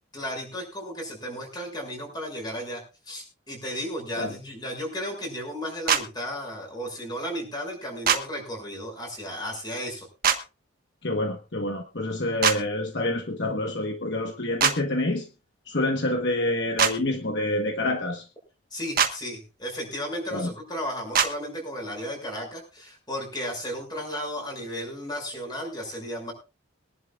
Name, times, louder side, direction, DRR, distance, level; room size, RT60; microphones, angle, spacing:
voice 1, 0.1-2.8 3.1-10.1 18.7-26.3, equal, 20° left, 1 dB, 6.4 m, -34 dB
sound 1, 5.9-6.0 8.1-8.2 10.2-10.4 12.4-12.6 14.6-14.8 16.8-16.9 19.0-19.1 21.1-21.3, right 7 dB, 45° right, 1.3 m, -21 dB
voice 2, 11.0-15.3 15.7-18.2 20.3-20.5, left 1 dB, 55° left, 4 dB, 1.3 m, -27 dB
23.5 x 11.0 x 2.4 m, 0.31 s
head